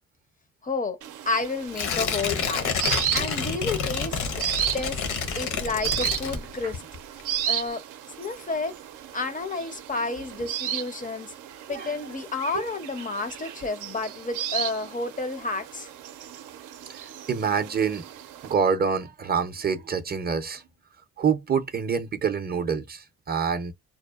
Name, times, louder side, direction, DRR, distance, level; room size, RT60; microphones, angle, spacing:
voice 1, 0.6-1.0 1.3-4.4 4.7-5.0 5.4-6.8 7.5-7.8 8.2-8.8 9.1-11.3 11.7-15.9, left 3 dB, 25° left, 0.4 m, -31 dB
sound 1, 1.0-18.5, right 11 dB, 90° right, 0.5 m, -34 dB
Tearing, 1.7-6.8 7.2-7.3, left 6 dB, 70° left, 0.8 m, -29 dB
voice 2, 17.3-18.0 18.4-20.6 21.2-23.7, right 6 dB, 30° right, 0.5 m, -26 dB
2.8 x 2.0 x 2.2 m
cardioid pair, 90°, 30 cm